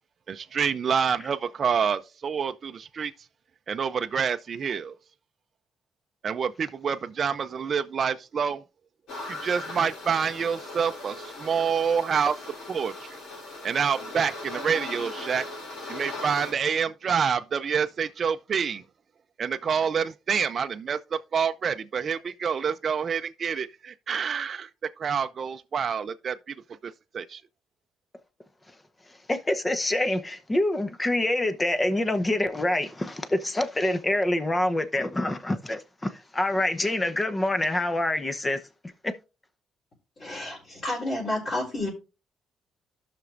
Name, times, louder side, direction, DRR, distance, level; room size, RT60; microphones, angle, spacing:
voice 1, 0.3-3.1 3.7-5.0 6.2-8.6 9.3-12.3 12.7-13.2 13.6-15.4 15.9-18.8 19.4-24.7 25.0-26.5 26.8-27.4, right 6 dB, 50° right, 0.5 m, -27 dB
sound 1, 9.1-16.5, left 2 dB, 80° left, 4.5 m, -39 dB
voice 2, 29.3-38.6 39.0-39.1, left 1 dB, 20° left, 0.9 m, -26 dB
voice 3, 40.2-41.9, left 1 dB, 45° left, 3.9 m, -30 dB
14.5 x 6.0 x 2.5 m
cardioid pair, 90°, 0 cm